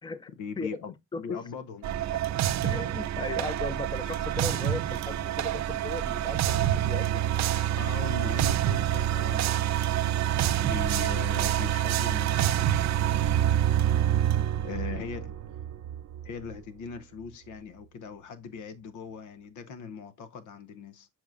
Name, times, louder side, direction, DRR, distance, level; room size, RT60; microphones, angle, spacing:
voice 1, 0.4-2.1 7.8-9.9 10.6-13.4 14.6-15.4 16.2-21.1, left 6 dB, 80° left, 0.9 m, -40 dB
sound 1, 1.8-16.5, right 11 dB, 65° right, 0.5 m, -27 dB
voice 2, 2.3-7.3, left 3 dB, 15° left, 0.6 m, -37 dB
7.3 x 6.0 x 2.5 m
cardioid pair, 90°, 30 cm